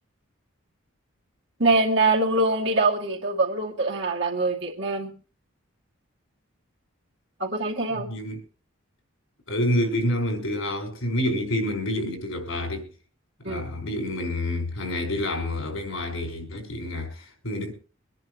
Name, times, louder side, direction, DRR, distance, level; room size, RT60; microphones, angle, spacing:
voice 1, 1.6-5.1 7.4-8.1 13.4-13.6, right 2 dB, 55° right, 2.4 m, -23 dB
voice 2, 8.0-8.4 9.5-12.9 13.4-17.7, left 1 dB, 85° left, 4.6 m, -28 dB
24.0 x 10.5 x 3.0 m
head